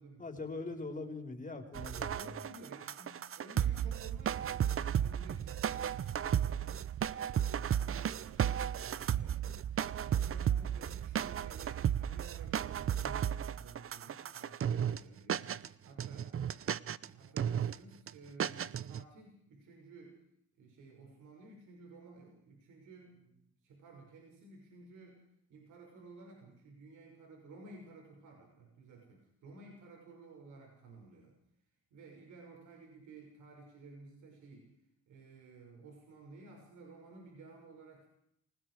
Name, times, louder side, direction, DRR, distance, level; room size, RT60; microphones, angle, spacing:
voice 1, 0.2-2.4, left 3 dB, 25° left, 4 dB, 4.5 m, -42 dB
sound 1, 1.7-15.0 15.3-15.7 16.0-17.1 17.4-17.8 18.1-18.2 18.4-19.0, right 9 dB, 45° right, 0.8 m, -34 dB
voice 2, 2.1-6.9 7.3-16.3 16.6-20.2 20.6-25.2 25.5-31.3 31.9-34.8 35.1-38.1, right 3 dB, 75° right, 0 dB, 6.4 m, -55 dB
28.0 x 19.5 x 5.0 m, 0.71 s
cardioid pair, 90°, 30 cm